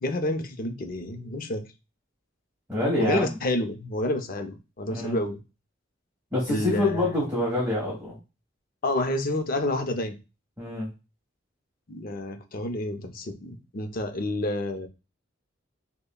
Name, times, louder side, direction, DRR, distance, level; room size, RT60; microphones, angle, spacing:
voice 1, 0.0-1.6 3.0-5.4 6.5-7.1 8.8-10.2 11.9-14.9, left 1 dB, 50° left, 6 dB, 0.7 m, -29 dB
voice 2, 2.7-3.2 4.9-5.2 6.3-8.2 10.6-10.9, left 1 dB, 10° right, -5 dB, 1.4 m, -26 dB
6.6 x 2.2 x 2.3 m, 0.28 s
head